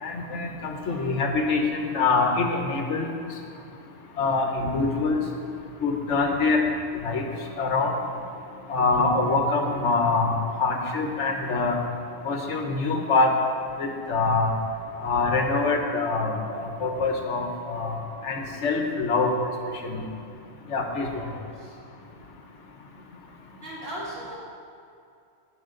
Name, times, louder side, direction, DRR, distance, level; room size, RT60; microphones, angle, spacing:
voice 1, 0.0-3.1 4.2-5.2 5.8-6.6 7.0-7.2 7.6-7.9 8.7-10.3 10.6-11.8 12.2-13.3 13.8-14.5 15.0-19.4 19.8-20.1 20.7-21.1, left 3 dB, 75° left, 3 dB, 1.3 m, -24 dB
voice 2, 0.8-1.1 21.1-21.7 23.6-24.4, equal, 55° right, -8 dB, 2.9 m, -38 dB
16.0 x 5.6 x 3.8 m, 2.5 s
omnidirectional pair, 1.2 m